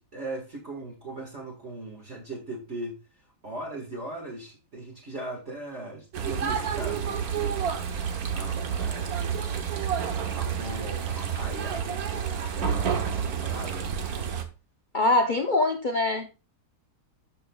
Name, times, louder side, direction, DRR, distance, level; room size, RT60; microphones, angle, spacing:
voice 1, 0.0-7.7 8.3-9.3 10.4-13.9, right 2 dB, 40° right, -2 dB, 1.8 m, -39 dB
sound 1, 6.1-14.4, right 7 dB, 60° right, 1.3 m, -29 dB
voice 2, 14.9-16.3, left 2 dB, 80° left, 5 dB, 0.4 m, -23 dB
13.0 x 5.5 x 2.3 m, 0.30 s
omnidirectional pair, 1.9 m